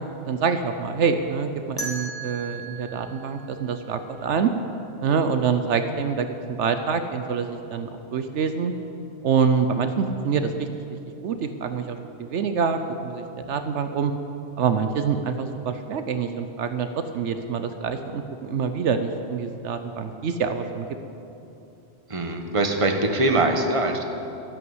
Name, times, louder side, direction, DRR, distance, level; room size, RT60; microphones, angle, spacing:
voice 1, 0.0-4.5 5.0-6.3 6.6-8.7 9.2-10.7 11.2-14.1 14.6-16.9 17.1-20.9, right 6 dB, 75° right, 8 dB, 1.0 m, -26 dB
sound 1, 1.8-4.6, right 3 dB, 5° left, 2.8 m, -37 dB
voice 2, 22.1-24.1, right 2 dB, 30° right, 5 dB, 1.1 m, -22 dB
12.5 x 11.0 x 7.9 m, 2.9 s
omnidirectional pair, 1.2 m